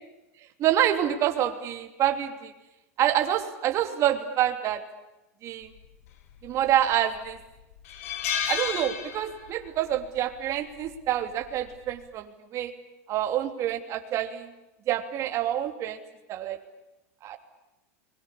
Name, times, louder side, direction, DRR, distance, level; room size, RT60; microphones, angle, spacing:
voice 1, 0.6-2.5 3.0-4.8 5.4-5.7 6.4-7.4 8.5-12.7 13.1-14.5 14.9-16.0 16.3-16.6 17.2-17.4, right 11 dB, 40° right, 6 dB, 3.2 m, -27 dB
sound 1, 6.4-7.0 7.4-7.5 7.9-9.7 9.9-10.2 11.4-11.7, left 8 dB, 75° left, 4.0 m, -31 dB
30.0 x 22.5 x 8.5 m, 0.96 s
supercardioid pair, 135°, 8 cm